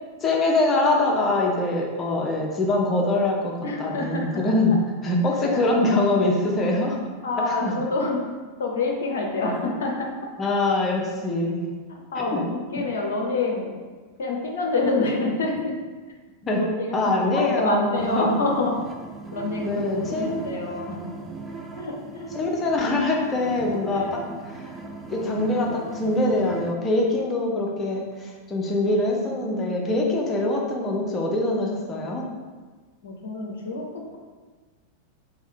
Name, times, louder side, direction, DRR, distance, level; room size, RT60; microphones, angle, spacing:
voice 1, 0.2-3.5 3.8-4.8 5.0-7.0 7.5-7.7 10.4-11.7 12.3-12.4 12.7-12.8 16.4-16.6 16.9-18.3 19.6-20.6 22.3-24.2 24.5-24.7 25.1-32.2, left 2 dB, 20° left, -1 dB, 0.7 m, -23 dB
voice 2, 3.6-4.4 5.4-5.5 7.2-8.2 8.6-10.1 11.9-13.7 14.2-15.7 16.5-18.8 19.3-21.0 21.8-22.3 23.9-24.2 33.0-34.2, left 2 dB, 60° left, 0 dB, 0.6 m, -27 dB
sound 1, 18.0-26.7, right 3 dB, 20° right, 0.4 m, -38 dB
3.4 x 3.1 x 3.7 m, 1.4 s
figure-of-eight pair, 90°, 0 cm